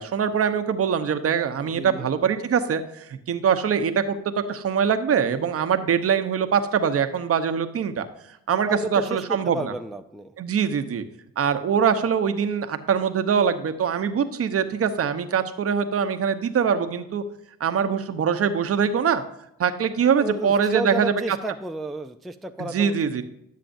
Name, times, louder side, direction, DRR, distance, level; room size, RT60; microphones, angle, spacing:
voice 1, 0.0-8.1 8.5-9.7 10.4-11.0 11.4-17.2 17.6-19.2 19.6-21.4 22.6-23.2, right 7 dB, 50° right, 8 dB, 0.9 m, -23 dB
voice 2, 1.6-2.1 8.7-10.3 20.2-23.2, right 2 dB, ahead, 6 dB, 0.4 m, -32 dB
11.5 x 7.5 x 2.6 m, 0.78 s
cardioid pair, 90°, 30 cm